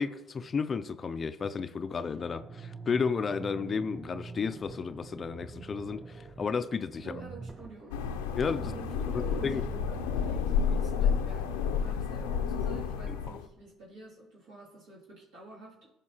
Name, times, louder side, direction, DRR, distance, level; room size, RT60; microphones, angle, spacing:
voice 1, 0.0-7.1 8.4-8.7 9.1-9.6 13.1-13.4, left 5 dB, 40° left, 0.4 m, -33 dB
sound 1, 1.8-11.7, right 4 dB, 25° right, 0.9 m, -46 dB
voice 2, 7.0-8.0 8.7-15.9, right 2 dB, 75° right, 2.6 m, -49 dB
sound 2, 7.9-13.4, left 7 dB, 85° left, 0.5 m, -30 dB
14.0 x 5.2 x 2.9 m
hypercardioid pair, 65°, 0 cm